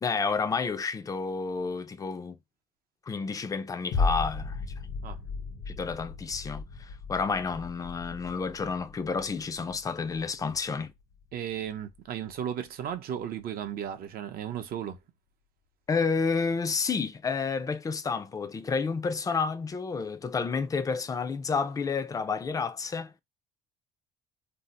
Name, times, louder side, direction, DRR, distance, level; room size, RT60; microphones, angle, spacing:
voice 1, 0.0-2.4 3.1-4.6 5.7-10.9 15.9-23.1, left 5 dB, 20° left, 0.4 m, -30 dB
sound 1, 3.9-12.5 12.9-13.0, left 4 dB, 70° left, 0.9 m, -36 dB
voice 2, 11.3-15.0, right 9 dB, 60° right, 0.6 m, -35 dB
2.7 x 2.0 x 4.0 m
cardioid pair, 110°, 17 cm